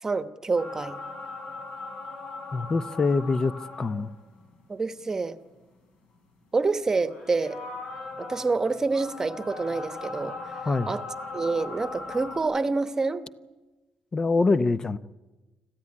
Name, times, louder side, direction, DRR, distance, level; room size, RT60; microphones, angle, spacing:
voice 1, 0.0-1.0 4.7-5.4 6.5-7.6 8.2-10.3 10.9-11.0 11.3-13.3, right 3 dB, 25° right, 11 dB, 1.1 m, -27 dB
sound 1, 0.6-4.6 5.1-5.2 7.1-12.4, left 3 dB, 65° left, 6.2 m, -39 dB
voice 2, 2.5-3.5 3.8-4.1 10.7-10.9 14.1-15.0, left 3 dB, 30° left, 14 dB, 0.7 m, -24 dB
26.0 x 14.5 x 9.8 m, 1.2 s
cardioid pair, 120°, 2 cm